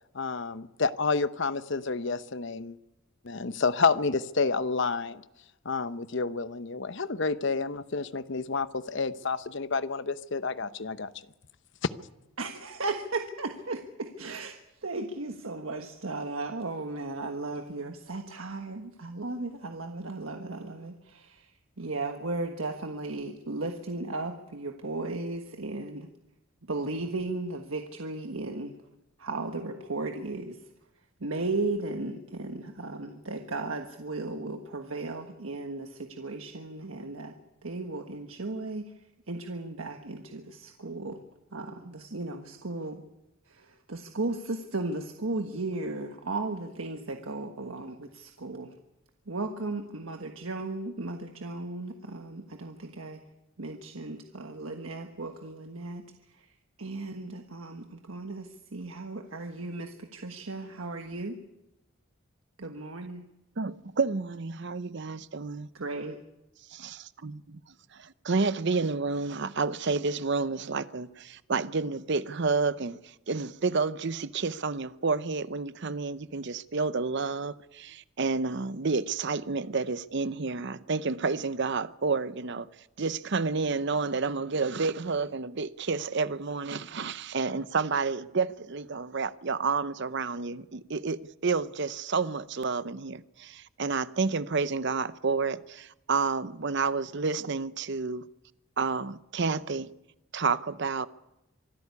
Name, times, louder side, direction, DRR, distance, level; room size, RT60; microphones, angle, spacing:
voice 1, 0.1-2.8 3.2-5.2 5.6-11.1 11.8-11.9, left 4 dB, 60° left, 0.9 m, -29 dB
voice 2, 12.4-26.1 26.7-28.8 29.2-30.6 31.2-37.4 37.6-38.9 39.3-41.2 41.5-43.0 43.5-48.7 49.3-53.2 53.6-56.0 56.3-56.5 56.8-61.4 62.6-63.3 65.7-66.2, right 2 dB, 75° right, 1.4 m, -35 dB
voice 3, 63.6-65.7 66.7-67.6 67.9-73.0 73.3-82.7 83.0-98.3 98.8-99.9 100.3-101.1, right 4 dB, 55° right, 0.7 m, -30 dB
25.0 x 13.0 x 9.7 m
head